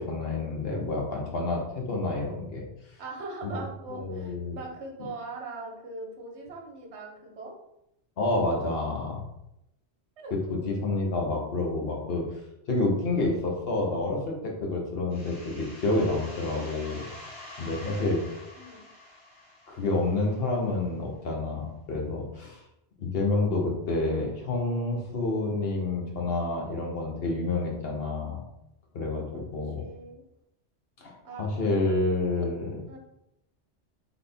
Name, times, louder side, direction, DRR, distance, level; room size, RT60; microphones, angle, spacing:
voice 1, 0.0-2.6 3.4-3.5 3.9-4.6 8.2-9.2 10.3-12.3 12.7-17.1 17.6-18.2 19.7-22.6 23.0-28.4 28.9-29.2 29.5-29.8 31.0-32.7, left 2 dB, 60° left, 0 dB, 1.1 m, -28 dB
voice 2, 3.0-7.5 10.2-10.3 17.8-18.9 29.3-29.4 29.8-30.2 31.2-31.5 32.2-32.5 32.9-33.0, right 2 dB, 70° right, 1 dB, 1.2 m, -40 dB
sound 1, 15.1-20.6, left 1 dB, 30° left, 1.4 m, -46 dB
4.0 x 3.6 x 3.3 m, 0.84 s
omnidirectional pair, 1.2 m